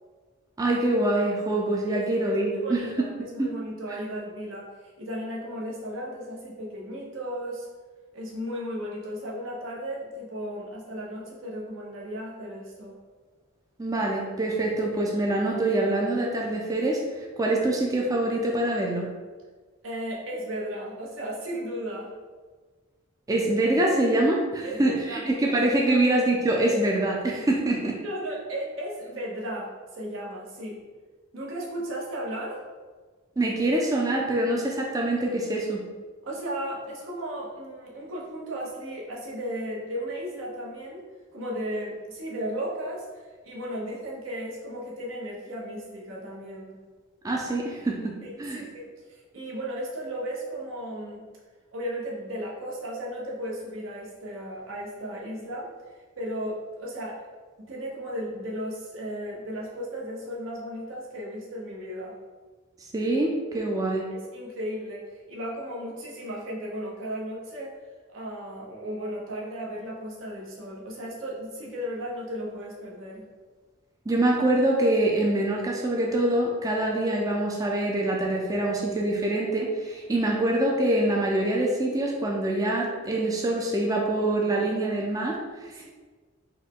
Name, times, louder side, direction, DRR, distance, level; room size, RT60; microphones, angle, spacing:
voice 1, 0.6-2.8 3.4-3.5 13.8-17.0 17.4-19.1 23.3-28.0 33.4-35.8 47.2-48.1 48.4-48.6 62.9-64.1 74.1-85.9, right 1 dB, 20° right, -1 dB, 0.4 m, -25 dB
voice 2, 1.9-4.7 5.0-7.7 8.1-13.0 19.8-22.1 24.6-25.6 25.9-26.0 27.8-30.8 31.3-32.6 36.2-41.1 41.3-46.8 48.2-48.8 49.1-51.3 51.7-57.2 57.6-62.2 64.1-67.7 68.1-73.3 80.1-80.3 85.8-85.9, equal, 80° right, -3 dB, 0.9 m, -35 dB
4.3 x 2.1 x 3.6 m, 1.4 s
head